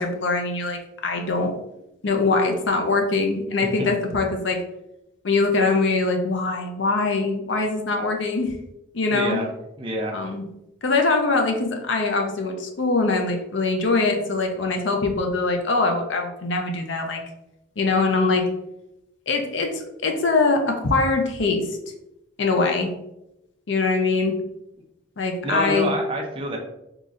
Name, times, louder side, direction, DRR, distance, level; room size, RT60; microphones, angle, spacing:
voice 1, 0.0-1.5 2.0-4.6 5.2-8.6 8.9-9.4 10.1-10.4 10.8-17.2 17.8-18.5 19.3-21.8 22.4-22.9 23.7-24.3 25.2-25.9, left 3 dB, 65° left, 3 dB, 0.5 m, -22 dB
voice 2, 9.1-9.5 9.8-10.2 25.4-26.6, right 1 dB, 25° right, 0 dB, 0.5 m, -27 dB
3.8 x 3.1 x 2.5 m, 0.87 s
head